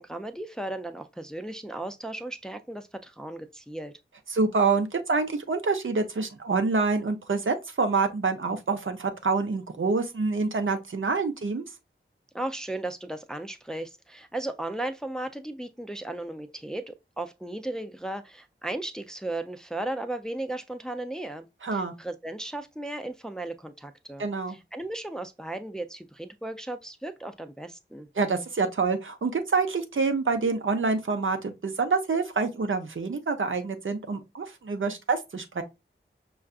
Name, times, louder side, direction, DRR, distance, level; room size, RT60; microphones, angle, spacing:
voice 1, 0.0-3.9 12.3-21.5 21.7-24.2 24.5-28.1, right 1 dB, 5° left, 0.4 m, -35 dB
voice 2, 4.3-11.6 21.6-21.9 24.2-24.6 28.2-35.6, right 4 dB, 70° right, 0.7 m, -27 dB
5.5 x 2.3 x 2.3 m
wide cardioid pair, 65°, 21 cm